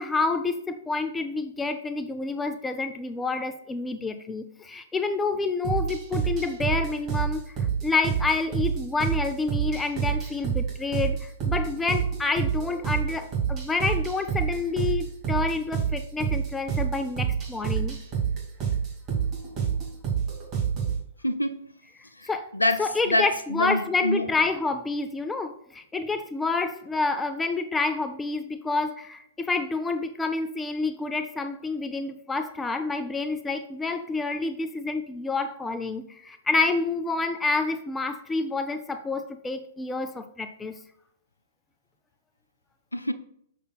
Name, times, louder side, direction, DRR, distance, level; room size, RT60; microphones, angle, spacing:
voice 1, 0.0-18.0 22.2-22.5 22.8-40.8, left 3 dB, 10° left, 0.5 m, -28 dB
sound 1, 5.6-21.0, right 7 dB, 30° right, 2.4 m, -28 dB
voice 2, 21.2-21.7 22.2-24.3 42.9-43.1, left 1 dB, 85° left, 0.5 m, -26 dB
6.6 x 6.4 x 2.3 m
figure-of-eight pair, 110°, 0 cm